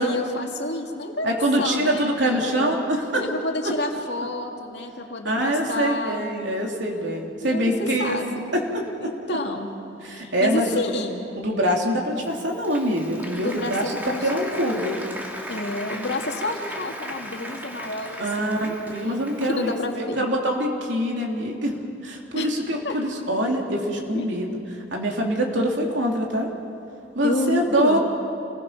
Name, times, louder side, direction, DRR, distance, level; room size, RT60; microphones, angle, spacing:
voice 1, 0.0-2.8 3.2-6.2 7.4-8.4 9.0-9.7 10.0-11.2 13.4-14.4 15.5-18.8 19.5-20.3 22.4-22.5 22.8-23.0 24.1-24.3 27.2-28.0, left 2 dB, 60° left, 2 dB, 2.3 m, -29 dB
voice 2, 1.2-3.3 5.2-8.8 10.0-10.8 11.4-15.0 18.2-21.7 22.0-24.6 24.9-26.5 27.1-28.0, equal, 70° right, 0 dB, 3.3 m, -24 dB
Applause, 12.3-19.9, equal, 10° right, 2.0 m, -37 dB
28.5 x 21.0 x 5.8 m, 2.8 s
head